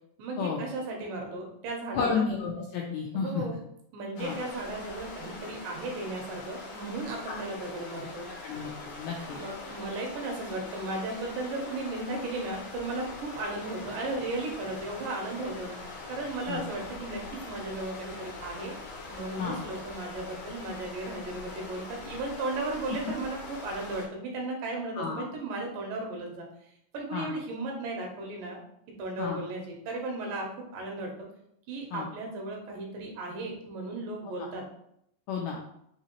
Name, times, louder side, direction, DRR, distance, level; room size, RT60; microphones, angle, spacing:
voice 1, 0.2-2.2 3.2-3.6 3.9-8.3 9.3-15.8 16.1-18.8 19.1-26.5 26.9-28.6 29.0-31.1 31.7-34.6, right 2 dB, 85° right, 1 dB, 2.5 m, -35 dB
voice 2, 1.9-3.4 4.2-4.3 7.3-7.4 8.4-9.4 16.5-16.6 19.4-19.6 25.0-25.3 27.1-27.3 29.2-29.4 31.9-32.1 35.3-35.6, left 5 dB, 90° left, -1 dB, 1.6 m, -31 dB
sound 1, 4.2-24.1, left 3 dB, 65° left, 1.7 m, -43 dB
5.5 x 2.8 x 2.9 m, 0.74 s
omnidirectional pair, 3.8 m